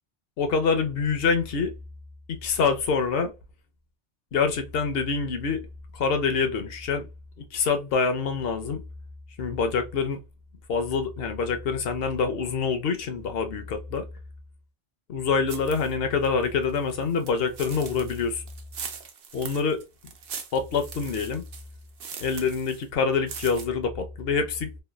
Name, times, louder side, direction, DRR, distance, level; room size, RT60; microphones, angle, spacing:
voice 1, 0.4-1.7 2.3-3.3 4.3-5.6 5.9-7.1 7.5-8.8 9.4-10.2 10.7-14.0 15.1-18.4 19.3-19.8 20.5-21.4 22.2-24.7, left 5 dB, 70° left, 0.8 m, -26 dB
sound 1, 15.5-15.9 16.2-22.8 23.1-23.6, right 6 dB, 65° right, 0.8 m, -41 dB
3.1 x 2.2 x 2.2 m
omnidirectional pair, 1.1 m